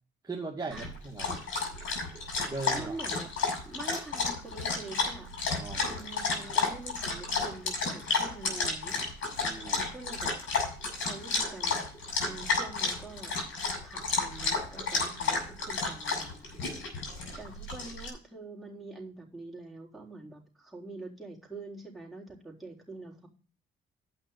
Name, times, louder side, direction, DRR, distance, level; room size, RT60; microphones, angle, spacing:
voice 1, 0.2-1.4 2.5-3.0 5.6-5.9 6.4-6.5 9.7-9.8 17.2-17.4, right 3 dB, 20° right, -3 dB, 2.0 m, -38 dB
Dog, 0.7-18.1, left 4 dB, 80° left, 5.9 m, -32 dB
voice 2, 2.3-3.3 3.7-5.3 5.9-9.1 9.4-10.6 11.0-11.8 12.3-13.3 13.8-17.0 17.4-23.3, right 2 dB, ahead, -4 dB, 3.7 m, -45 dB
8.6 x 5.9 x 8.0 m, 0.38 s
cardioid pair, 90°, 20 cm